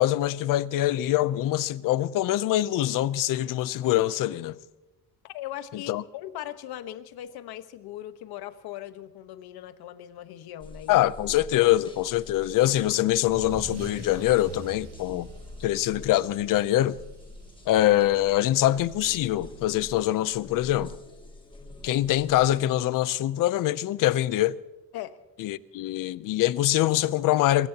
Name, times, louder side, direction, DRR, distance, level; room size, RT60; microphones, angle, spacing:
voice 1, 0.0-4.6 5.7-6.0 10.9-15.3 15.6-17.0 17.7-21.0 21.8-24.6 25.4-27.7, left 14 dB, 55° left, 0.7 m, -24 dB
voice 2, 5.2-11.1 24.9-25.2, left 12 dB, 70° left, 1.3 m, -39 dB
sound 1, 10.6-22.6, left 2 dB, 15° left, 1.6 m, -47 dB
Car / Engine starting / Accelerating revving vroom, 12.4-19.6, right 3 dB, 40° right, 2.1 m, -46 dB
23.0 x 21.5 x 2.9 m
cardioid pair, 170°, 39 cm